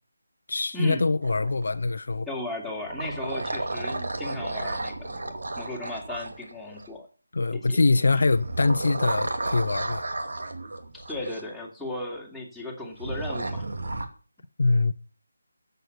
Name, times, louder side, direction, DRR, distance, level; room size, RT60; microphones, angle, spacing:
voice 1, 0.5-2.3 7.3-10.0 14.6-14.9, left 3 dB, 60° left, 0.8 m, -23 dB
sound 1, 1.2-2.2 2.7-6.9 8.2-11.4 13.0-14.0, right 2 dB, 60° right, 2.5 m, -33 dB
voice 2, 2.3-7.1 7.5-7.8 8.1-8.2 10.9-13.7, left 1 dB, ahead, 2.6 m, -36 dB
15.0 x 8.1 x 7.0 m
figure-of-eight pair, 160°, 0 cm